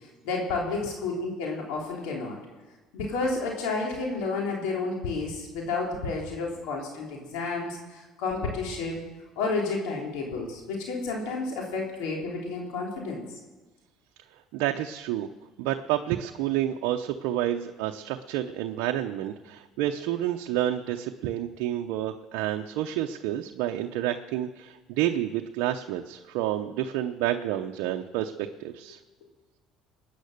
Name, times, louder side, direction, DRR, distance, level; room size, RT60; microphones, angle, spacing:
voice 1, 0.2-2.4 2.9-9.0 9.4-13.2, left 3 dB, 85° left, -1 dB, 3.5 m, -31 dB
voice 2, 14.5-15.3 15.6-29.0, right 12 dB, 85° right, 4 dB, 0.7 m, -29 dB
21.0 x 9.6 x 6.6 m, 1.2 s
supercardioid pair, 105°, 0 cm